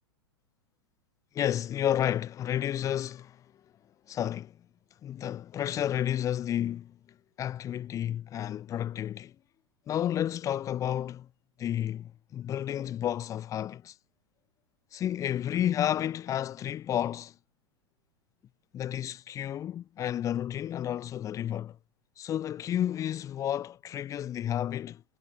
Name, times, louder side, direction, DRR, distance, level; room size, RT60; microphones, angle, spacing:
voice 1, 1.3-3.4 4.1-4.6 5.0-7.0 7.4-9.3 9.9-11.3 11.6-13.9 14.9-17.3 18.7-21.8 22.2-25.0, left 11 dB, 20° left, 0.6 m, -31 dB
figure-of-eight pair, 95°, 15 cm